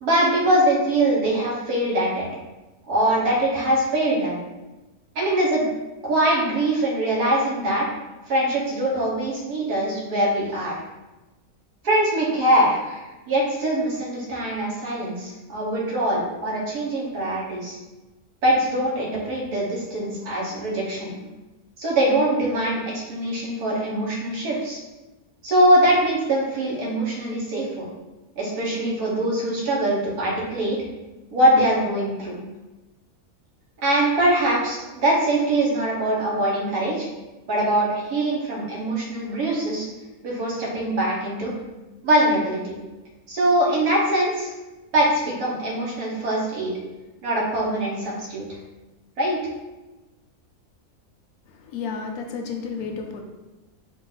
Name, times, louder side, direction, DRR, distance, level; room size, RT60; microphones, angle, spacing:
voice 1, 0.0-2.3 2.9-4.4 5.1-5.7 6.0-7.9 8.3-10.8 11.8-17.8 18.4-21.2 21.8-24.8 25.4-27.9 28.4-30.8 31.3-32.4 33.8-37.1 37.5-39.9 40.2-41.5 42.0-42.7 43.3-44.5 44.9-46.7 47.2-48.5 49.2-49.5, right 1 dB, 85° right, -4 dB, 1.6 m, -22 dB
voice 2, 51.5-53.2, left 5 dB, 80° left, 2 dB, 1.1 m, -32 dB
4.5 x 2.5 x 3.9 m, 1.1 s
omnidirectional pair, 1.6 m